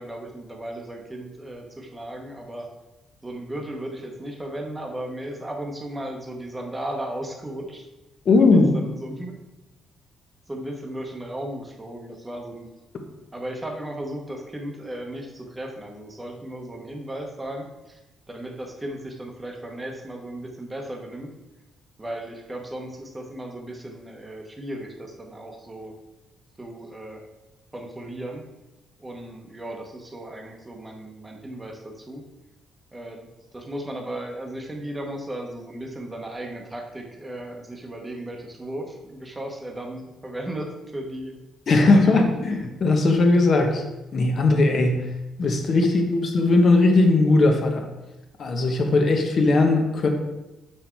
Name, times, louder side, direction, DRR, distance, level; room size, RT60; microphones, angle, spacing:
voice 1, 0.0-2.7 3.2-7.9 8.4-9.3 10.5-12.7 13.3-18.0 18.3-21.3 22.0-25.9 26.6-27.2 27.7-28.5 29.0-32.2 32.9-41.3 41.8-42.3, right 1 dB, 10° right, 2 dB, 1.1 m, -35 dB
voice 2, 8.2-8.7 41.7-43.8 44.1-45.1 45.4-47.9 48.4-50.1, left 2 dB, 40° left, 4 dB, 1.2 m, -19 dB
7.1 x 6.1 x 4.6 m, 1.0 s
cardioid pair, 150°, 0 cm